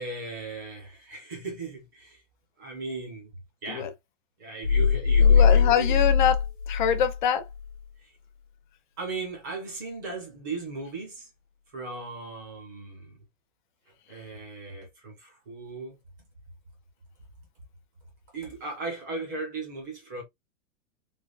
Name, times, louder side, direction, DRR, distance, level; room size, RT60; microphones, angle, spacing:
voice 1, 0.0-2.2 2.6-3.3 3.6-3.9 4.4-6.0 8.0-8.1 9.0-11.3 11.7-13.2 14.1-16.0 18.3-20.2, right 3 dB, 15° right, 0.5 m, -37 dB
sound 1, 4.6-7.2 7.5-7.7, left 6 dB, 85° left, 0.9 m, -21 dB
voice 2, 5.2-6.4 6.7-7.5, left 8 dB, 40° left, 0.4 m, -24 dB
3.3 x 2.1 x 2.4 m
supercardioid pair, 175°, 37 cm